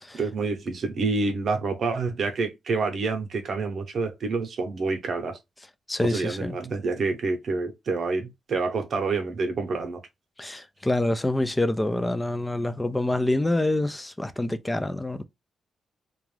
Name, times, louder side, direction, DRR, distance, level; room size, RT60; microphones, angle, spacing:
voice 1, 0.1-5.4 6.0-10.0, right 4 dB, 60° right, 0.7 m, -28 dB
voice 2, 5.9-6.5 10.4-15.3, left 1 dB, 10° left, 0.3 m, -26 dB
2.4 x 2.2 x 3.2 m
cardioid pair, 100°, 0 cm